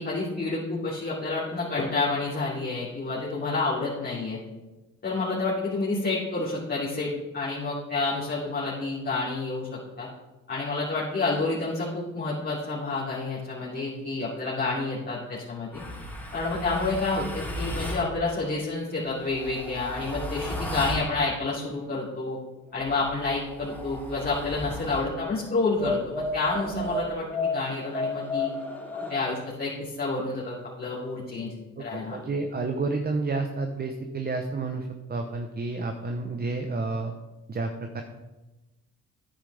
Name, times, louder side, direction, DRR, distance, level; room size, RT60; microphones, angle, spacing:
voice 1, 0.0-4.4 5.0-9.7 10.0-10.1 10.5-15.8 16.3-22.4 22.7-28.5 29.1-31.5 31.8-32.2, left 3 dB, 35° left, -8 dB, 2.9 m, -29 dB
sound 1, 15.7-18.1 19.0-21.1 22.7-25.1 25.8-29.2, left 2 dB, 5° left, 3.0 m, -33 dB
voice 2, 31.8-37.1 37.5-38.0, right 3 dB, 30° right, 5 dB, 0.9 m, -30 dB
9.9 x 8.8 x 3.5 m, 1.1 s
cardioid pair, 90°, 30 cm